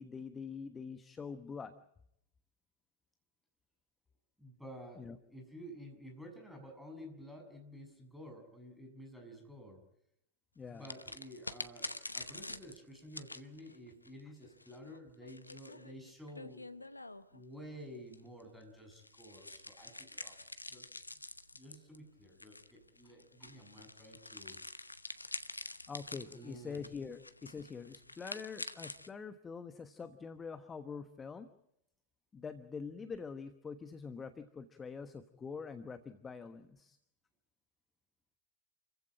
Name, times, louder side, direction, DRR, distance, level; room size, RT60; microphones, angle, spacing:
voice 1, 0.0-1.7 5.0-5.2 10.6-10.9 25.7-31.5 32.3-37.0, left 5 dB, 15° left, 10 dB, 1.2 m, -45 dB
voice 2, 4.4-9.8 10.7-16.6 17.3-20.3 20.6-20.9 21.5-24.6 26.3-26.8, equal, ahead, 3 dB, 6.8 m, -51 dB
sound 1, 10.8-17.4 18.1-29.1, left 2 dB, 85° left, 0.9 m, -47 dB
29.0 x 15.5 x 8.8 m, 0.78 s
figure-of-eight pair, 90°, 0 cm